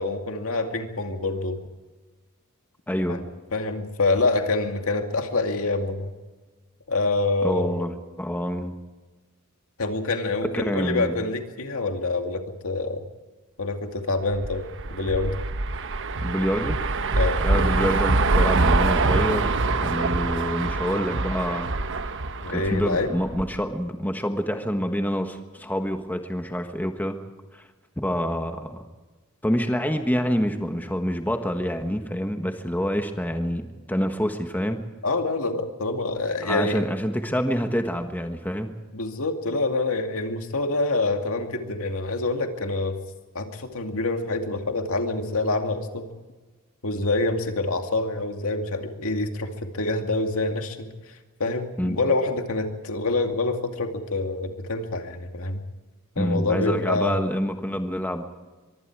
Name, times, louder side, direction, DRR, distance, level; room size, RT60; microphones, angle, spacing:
voice 1, 0.0-1.6 3.1-3.2 3.5-6.1 6.9-7.8 9.8-13.0 13.6-15.4 17.2-17.4 22.4-23.1 35.0-36.8 38.9-43.0 43.3-46.1 46.8-50.9 51.4-55.6 56.2-57.3, left 2 dB, 70° left, 4 dB, 2.5 m, -26 dB
voice 2, 2.9-3.2 7.4-7.9 8.2-8.7 10.5-11.1 16.2-16.8 17.4-21.7 22.5-27.2 27.5-27.6 28.0-28.8 29.4-34.8 36.4-38.7 51.8-52.0 56.2-58.2, equal, 10° left, 5 dB, 1.4 m, -27 dB
sound 1, 14.3-23.6, right 3 dB, 60° right, 1.1 m, -24 dB
24.5 x 23.0 x 4.8 m, 1.2 s
head